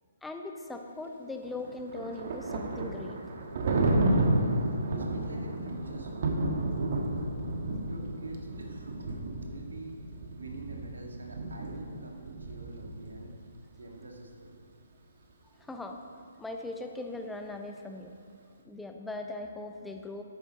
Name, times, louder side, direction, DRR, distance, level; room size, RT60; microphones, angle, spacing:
voice 1, 0.2-3.2 15.6-16.0 16.4-18.1 18.6-20.2, left 2 dB, 5° left, 4 dB, 0.8 m, -39 dB
Thunder, 1.5-13.3, right 2 dB, 55° right, 1.4 m, -31 dB
voice 2, 4.3-7.1 7.9-10.0 10.4-13.3 13.8-14.5, right 2 dB, 80° right, 1 dB, 1.9 m, -46 dB
12.0 x 9.6 x 4.1 m, 2.2 s
figure-of-eight pair, 140°, 0 cm